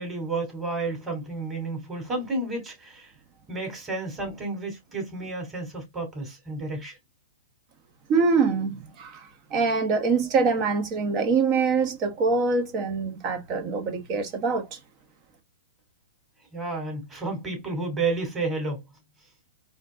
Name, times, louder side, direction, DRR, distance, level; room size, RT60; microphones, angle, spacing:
voice 1, 0.0-3.1 3.5-7.0 16.5-18.8, right 3 dB, 15° right, 2.9 m, -31 dB
voice 2, 8.1-14.8, right 4 dB, 35° right, 1.3 m, -24 dB
4.3 x 2.9 x 3.7 m
hypercardioid pair, 135°, 0 cm